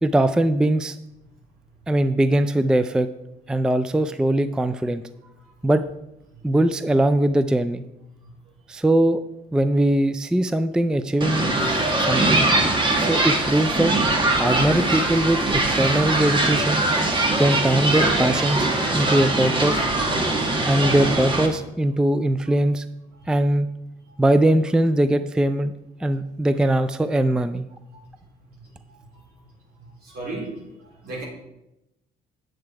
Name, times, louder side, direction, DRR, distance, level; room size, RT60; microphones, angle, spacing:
voice 1, 0.0-1.0 1.9-3.1 3.5-5.0 5.6-5.9 6.4-7.8 8.7-9.2 9.5-11.5 12.0-12.5 13.0-13.9 14.4-16.8 17.4-18.7 18.9-19.9 20.7-22.9 23.3-23.7 24.2-25.7 26.0-27.6, right 1 dB, 5° right, 11 dB, 0.3 m, -21 dB
sound 1, 11.2-21.5, right 2 dB, 30° right, 1.7 m, -22 dB
voice 2, 28.9-29.2 30.0-31.2, right 2 dB, 65° right, -3 dB, 4.2 m, -36 dB
8.8 x 7.7 x 4.7 m, 0.88 s
cardioid pair, 110°, 17 cm